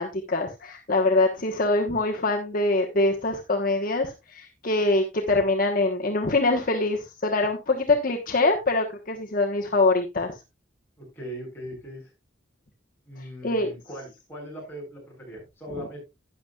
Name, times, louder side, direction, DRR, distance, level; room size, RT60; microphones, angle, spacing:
voice 1, 0.0-10.4 13.4-13.7, left 2 dB, 45° left, 1 dB, 1.2 m, -24 dB
voice 2, 11.0-12.1 13.1-16.1, equal, 10° left, -3 dB, 7.2 m, -39 dB
12.0 x 10.0 x 2.4 m, 0.24 s
head